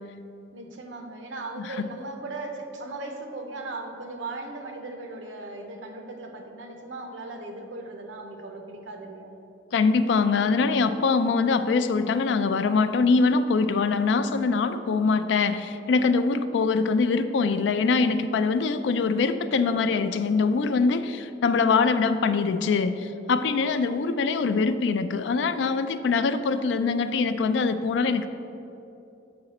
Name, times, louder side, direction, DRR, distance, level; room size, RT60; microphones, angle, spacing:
voice 1, 0.5-9.4, right 2 dB, 85° right, 4 dB, 0.8 m, -38 dB
voice 2, 9.7-28.3, left 4 dB, 75° left, 11 dB, 0.3 m, -23 dB
7.8 x 4.8 x 4.1 m, 2.9 s
head